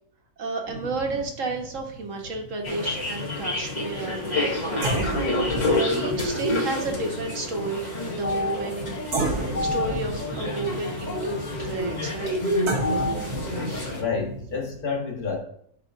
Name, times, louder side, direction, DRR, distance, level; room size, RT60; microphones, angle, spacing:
voice 1, 0.4-8.9 9.6-12.4 13.3-13.6, right 3 dB, 60° right, 2 dB, 1.5 m, -32 dB
sound 1, 0.7-3.9 4.3-4.4 4.8-8.8 9.1-14.8, right 2 dB, 85° right, 1.7 m, -33 dB
sound 2, 2.6-14.0, left 1 dB, 30° left, 1.3 m, -28 dB
voice 2, 13.9-15.4, left 5 dB, 80° left, -1 dB, 2.2 m, -29 dB
11.0 x 4.7 x 2.7 m, 0.66 s
omnidirectional pair, 1.6 m